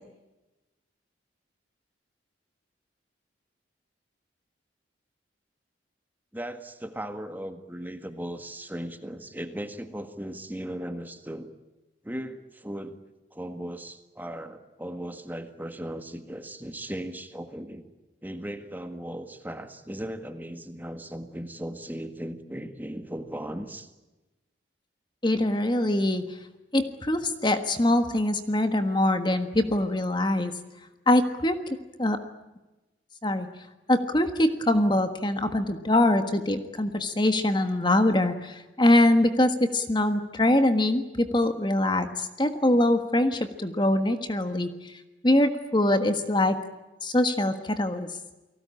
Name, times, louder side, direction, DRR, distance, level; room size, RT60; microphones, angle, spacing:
voice 1, 6.3-11.5 12.0-13.0 13.3-17.9 18.2-23.9, right 1 dB, 10° right, 8 dB, 1.7 m, -37 dB
voice 2, 25.2-26.4 26.7-30.6 31.1-32.2 33.2-33.5 33.9-44.9 45.2-46.6 47.0-48.1, left 1 dB, 25° left, 8 dB, 1.5 m, -23 dB
29.5 x 19.0 x 8.8 m, 1.1 s
head